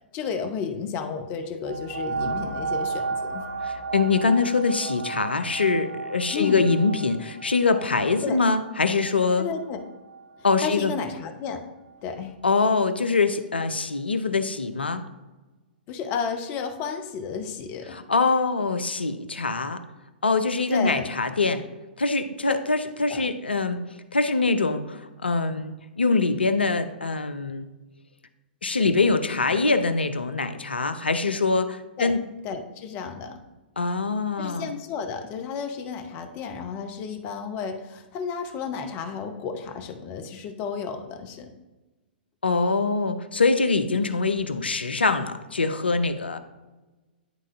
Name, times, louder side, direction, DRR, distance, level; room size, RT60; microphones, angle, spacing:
voice 1, 0.1-3.4 6.3-6.7 8.2-8.4 9.4-9.8 10.6-11.6 12.0-12.3 15.9-18.0 20.7-21.1 23.1-23.3 32.0-32.1 32.4-33.4 34.4-41.5, left 6 dB, 30° left, 7 dB, 0.7 m, -32 dB
sound 1, 1.7-10.9 11.6-11.7, right 4 dB, 75° right, 0.7 m, -34 dB
voice 2, 3.9-9.5 10.4-10.9 12.4-15.0 17.9-19.8 20.2-21.6 22.0-23.9 24.1-27.7 28.6-32.2 33.8-34.7 42.4-46.4, left 4 dB, 75° left, 10 dB, 0.5 m, -24 dB
10.5 x 3.7 x 2.6 m, 1.1 s
figure-of-eight pair, 110°, 6 cm